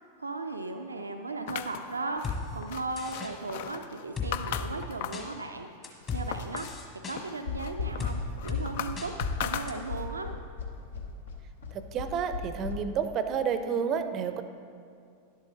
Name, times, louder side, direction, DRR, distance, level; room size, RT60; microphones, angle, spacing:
voice 1, 0.2-6.8 7.1-9.1 9.4-10.3, right 3 dB, 80° right, 5 dB, 0.5 m, -37 dB
sound 1, 1.5-5.3 5.7-6.8 7.2-10.2, left 9 dB, 50° left, 0.4 m, -38 dB
sound 2, 2.2-2.4 3.0-3.3 4.2-4.7 5.1-5.3 5.8-6.2 6.6-7.2 8.0-8.1 8.5-8.6 9.0-9.3 9.7-9.8, left 5 dB, 25° left, 1.3 m, -34 dB
sound 3, 7.5-12.7, left 5 dB, 70° left, 1.1 m, -36 dB
voice 2, 11.7-14.4, right 7 dB, 35° right, 10 dB, 0.6 m, -30 dB
11.0 x 8.0 x 4.0 m, 2.3 s
figure-of-eight pair, 90°, 0 cm